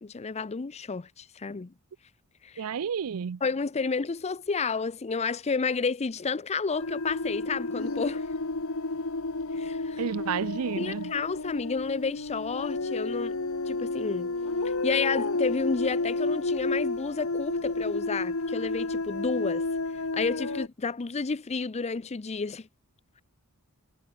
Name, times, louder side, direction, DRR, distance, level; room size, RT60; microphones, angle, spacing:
voice 1, 0.0-1.7 2.4-2.7 3.4-8.2 9.6-10.0 10.8-13.4 13.7-14.3 14.8-19.6 20.1-22.7, left 4 dB, 30° left, 0.5 m, -31 dB
voice 2, 2.6-3.4 10.0-11.1, right 7 dB, 70° right, 0.5 m, -31 dB
sound 1, 6.8-20.7, left 3 dB, 65° left, 1.6 m, -31 dB
head